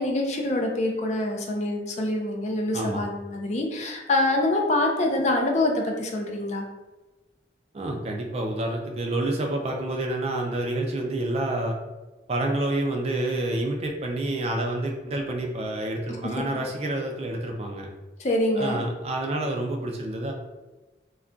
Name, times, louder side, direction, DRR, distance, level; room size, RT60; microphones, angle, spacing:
voice 1, 0.0-6.7 16.2-16.3 18.2-18.8, left 1 dB, 40° left, 1 dB, 0.4 m, -25 dB
voice 2, 7.7-11.8 12.3-17.9 18.6-20.3, right 1 dB, 35° right, 2 dB, 0.3 m, -28 dB
2.3 x 2.2 x 3.7 m, 1.1 s
head